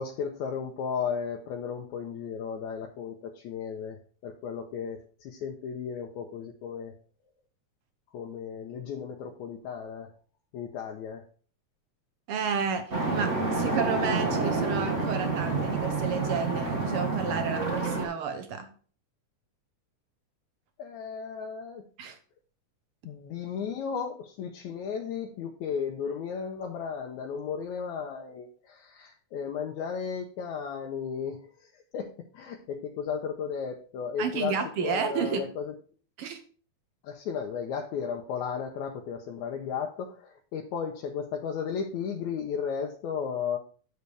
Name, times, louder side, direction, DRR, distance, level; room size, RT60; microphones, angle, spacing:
voice 1, 0.0-7.0 8.1-10.1 10.5-11.2 20.8-21.9 23.1-35.7 37.0-43.6, left 6 dB, 80° left, 1 dB, 2.1 m, -35 dB
voice 2, 12.3-18.7 22.0-22.2 34.2-35.4 36.2-36.4, right 6 dB, 70° right, 7 dB, 1.4 m, -31 dB
sound 1, 12.9-18.1, right 3 dB, 35° right, 1.4 m, -28 dB
8.2 x 6.9 x 3.3 m, 0.41 s
omnidirectional pair, 3.4 m